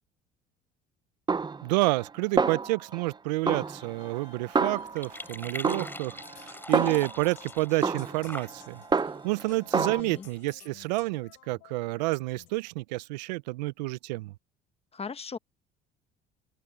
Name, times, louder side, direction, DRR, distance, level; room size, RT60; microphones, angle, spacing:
Snare drum, 1.3-2.1 2.4-3.1 3.5-5.2 5.6-7.3 7.8-9.4 9.7-10.0, right 4 dB, 20° right, 0.8 m, -29 dB
voice 1, 1.6-8.8 9.2-14.3, right 21 dB, 85° right, 0.7 m, -29 dB
sound 1, 3.4-12.5, left 23 dB, 75° left, 6.3 m, -56 dB
sound 2, 3.4-10.5, left 1 dB, 10° left, 4.2 m, -45 dB
voice 2, 9.7-10.3 14.9-15.4, left 5 dB, 30° left, 1.4 m, -39 dB
open air
hypercardioid pair, 70°, 21 cm